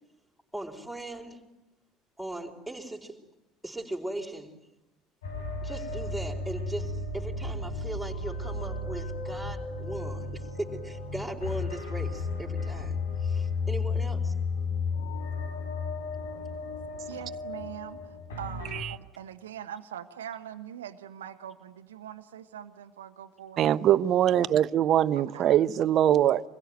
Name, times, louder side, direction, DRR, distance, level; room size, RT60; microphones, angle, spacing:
voice 1, 0.5-1.4 2.2-3.2 3.6-4.5 5.6-14.3, right 1 dB, ahead, 4.7 m, -38 dB
sound 1, 5.2-18.8, left 3 dB, 75° left, 4.9 m, -33 dB
voice 2, 17.1-23.6 25.3-25.4, right 10 dB, 75° right, 1.1 m, -42 dB
voice 3, 23.6-26.4, right 11 dB, 45° right, 0.9 m, -22 dB
26.5 x 21.5 x 9.4 m
figure-of-eight pair, 65°, 0 cm